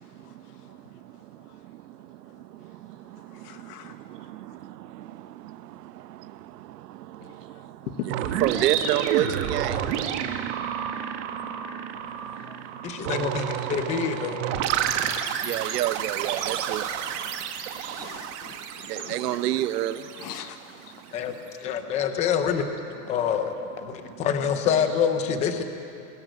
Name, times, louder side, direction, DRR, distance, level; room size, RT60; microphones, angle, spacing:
voice 1, 3.4-3.9 8.0-8.1 17.9-19.1 20.2-20.6, left 9 dB, 65° left, 8 dB, 1.8 m, -39 dB
sound 1, 8.1-20.8, right 9 dB, 45° right, 1.6 m, -30 dB
voice 2, 8.4-9.7 15.4-16.8 18.9-20.0, right 13 dB, 70° right, 13 dB, 1.1 m, -26 dB
voice 3, 12.8-14.4 21.1-21.3 21.6-22.7 23.1-25.6, left 7 dB, 15° left, 7 dB, 0.7 m, -26 dB
21.0 x 20.0 x 9.1 m, 2.6 s
supercardioid pair, 175°, 49 cm